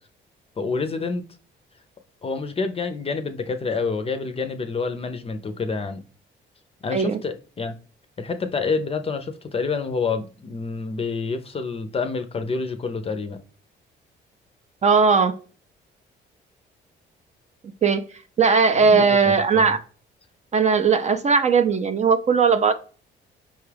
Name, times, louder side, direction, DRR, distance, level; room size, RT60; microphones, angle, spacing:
voice 1, 0.6-1.2 2.2-6.0 6.8-7.8 8.2-13.4 18.7-19.6, left 4 dB, 30° left, 0.5 m, -28 dB
voice 2, 14.8-15.3 17.8-18.0 18.4-19.8 20.5-22.7, right 5 dB, 35° right, 0.4 m, -18 dB
5.3 x 2.3 x 3.3 m
cardioid pair, 90°, 20 cm